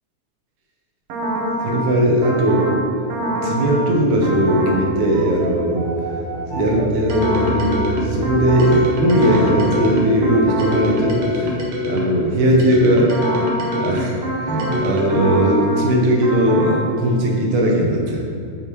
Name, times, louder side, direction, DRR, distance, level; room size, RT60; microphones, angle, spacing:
sound 1, 1.1-1.8 2.2-2.8 3.1-3.8 4.2-4.8 5.1-12.2 12.6-15.8 16.2-16.8, equal, 65° right, 1.9 m, -24 dB
voice 1, 1.6-2.7 3.4-5.9 6.5-11.5 11.9-13.1 13.7-18.2, right 1 dB, 85° right, -1 dB, 2.4 m, -18 dB
sound 2, 3.0-11.6, right 1 dB, 75° left, 1.6 m, -31 dB
7.0 x 5.5 x 3.0 m, 2.4 s
omnidirectional pair, 3.4 m